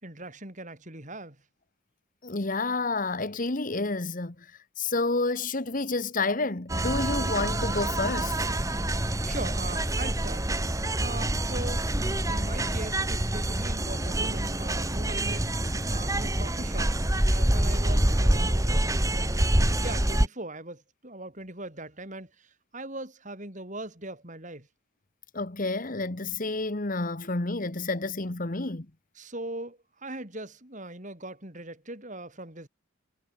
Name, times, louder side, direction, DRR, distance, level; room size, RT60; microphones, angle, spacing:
voice 1, 0.0-1.4 9.2-10.5 11.0-15.5 15.9-16.9 17.3-24.7 29.1-32.7, right 2 dB, 35° right, 5.1 m, -40 dB
voice 2, 2.2-4.3 4.8-8.4 25.3-28.9, left 3 dB, 40° left, 1.3 m, -29 dB
sound 1, 6.7-20.3, right 1 dB, 15° right, 1.6 m, -26 dB
head